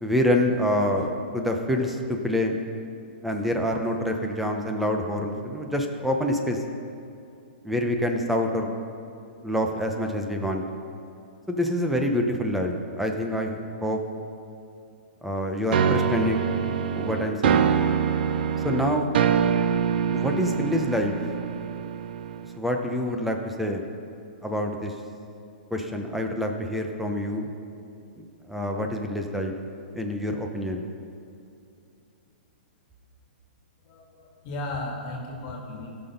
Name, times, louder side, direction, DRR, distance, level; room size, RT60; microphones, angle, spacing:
voice 1, 0.0-2.6 3.2-6.6 7.6-8.7 9.4-10.6 11.5-14.0 15.2-16.5 16.9-17.7 18.6-19.1 20.1-21.1 22.6-23.9 24.4-24.9 25.7-27.5 28.2-29.5 29.9-30.8, left 1 dB, ahead, 2 dB, 0.9 m, -26 dB
sound 1, 15.7-22.6, right 7 dB, 65° right, 0.6 m, -25 dB
voice 2, 33.9-35.9, left 2 dB, 40° left, -1 dB, 2.4 m, -35 dB
16.5 x 6.1 x 5.3 m, 2.6 s
hypercardioid pair, 145°, 6 cm